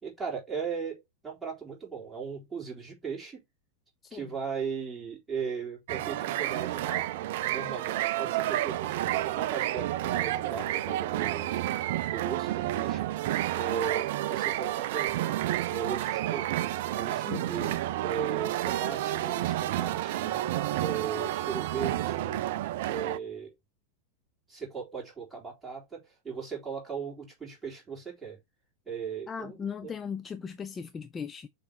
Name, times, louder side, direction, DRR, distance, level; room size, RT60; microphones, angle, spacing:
voice 1, 0.0-3.4 4.1-7.1 7.5-11.5 12.0-13.3 13.5-15.3 15.7-17.8 18.0-20.4 20.8-22.4 22.9-23.5 24.5-28.4 28.9-29.9, right 6 dB, 10° right, 3.8 m, -37 dB
sound 1, 5.9-23.2, right 14 dB, 50° right, 0.3 m, -30 dB
voice 2, 17.3-17.8 29.3-31.5, left 6 dB, 20° left, 0.4 m, -38 dB
6.9 x 3.2 x 4.3 m
figure-of-eight pair, 90°, 0 cm